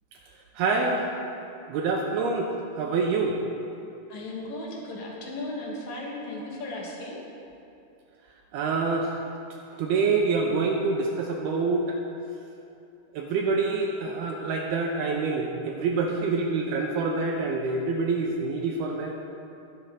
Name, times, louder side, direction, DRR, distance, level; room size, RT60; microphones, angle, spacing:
voice 1, 0.6-1.1 1.7-2.5 2.8-3.4 8.5-9.2 9.8-12.0 13.1-19.2, right 4 dB, 85° right, 1 dB, 2.3 m, -26 dB
voice 2, 4.1-7.2, left 2 dB, 55° left, -3 dB, 2.1 m, -36 dB
20.0 x 8.2 x 3.8 m, 2.7 s
omnidirectional pair, 5.4 m